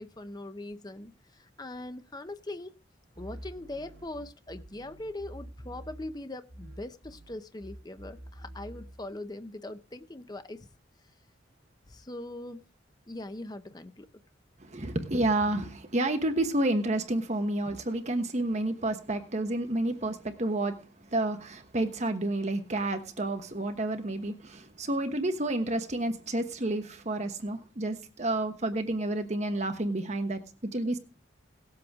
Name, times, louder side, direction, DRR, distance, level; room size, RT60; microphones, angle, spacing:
voice 1, 0.0-2.7 3.2-10.7 11.9-12.6 13.1-14.1 21.9-22.0, left 1 dB, 20° left, 0.7 m, -41 dB
sound 1, 3.1-6.2 6.5-9.0, right 1 dB, 65° right, 2.3 m, -47 dB
voice 2, 14.6-31.0, right 2 dB, 40° right, 1.2 m, -30 dB
18.5 x 7.8 x 3.6 m
head